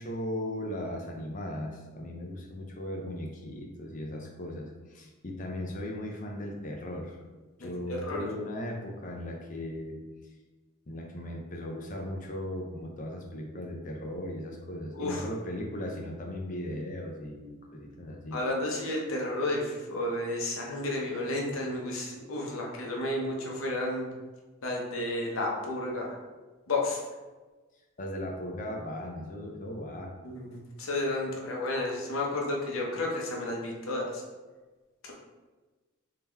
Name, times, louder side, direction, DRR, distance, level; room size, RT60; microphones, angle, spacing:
voice 1, 0.0-7.2 7.6-10.0 10.9-18.4 28.0-30.1, left 1 dB, 40° left, 1 dB, 0.6 m, -37 dB
voice 2, 7.6-8.3 14.9-15.2 18.3-24.1 24.6-26.2 26.7-27.0 30.2-34.2 35.0-35.1, left 2 dB, 75° left, -1 dB, 0.8 m, -32 dB
3.6 x 2.8 x 3.4 m, 1.2 s
head